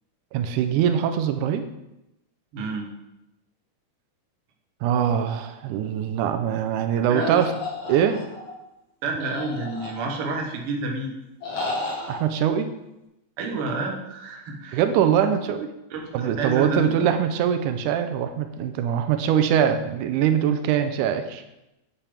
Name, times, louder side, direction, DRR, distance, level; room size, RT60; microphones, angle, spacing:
voice 1, 0.3-1.6 4.8-7.5 7.9-8.2 12.1-12.7 14.7-15.7 16.1-21.4, right 9 dB, 90° right, 8 dB, 2.1 m, -22 dB
voice 2, 2.5-2.9 7.1-7.4 9.0-11.1 13.4-14.8 15.9-17.2, right 3 dB, 60° right, 1 dB, 1.8 m, -29 dB
sound 1, 7.2-8.5 9.2-10.3 11.4-12.2, left 2 dB, 55° left, 2.8 m, -32 dB
8.3 x 7.1 x 3.4 m, 0.91 s
omnidirectional pair, 3.5 m